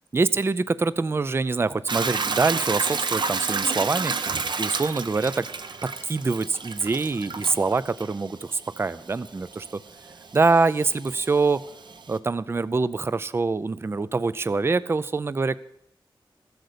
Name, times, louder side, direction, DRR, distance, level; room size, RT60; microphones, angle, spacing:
voice 1, 0.1-4.1 4.6-5.5 5.8-9.8 10.3-11.6 12.1-15.6, right 4 dB, 30° right, 16 dB, 0.4 m, -24 dB
Hiss / Toilet flush / Trickle dribble, 1.9-12.2, right 4 dB, 60° right, 0.8 m, -31 dB
14.5 x 7.9 x 6.7 m, 0.73 s
wide cardioid pair, 110°, 9 cm